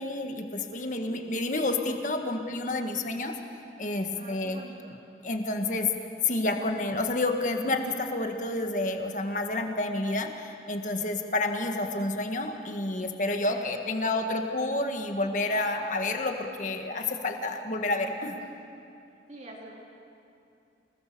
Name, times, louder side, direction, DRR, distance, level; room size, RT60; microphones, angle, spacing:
voice 1, 0.0-3.3 3.8-4.6 5.2-5.9 6.2-18.4, left 2 dB, 45° left, 4 dB, 1.8 m, -29 dB
voice 2, 0.7-1.2 4.1-5.0 13.5-14.4 18.4-18.5 19.3-19.7, right 1 dB, 40° right, -3 dB, 3.3 m, -47 dB
28.0 x 19.5 x 7.0 m, 2.6 s
head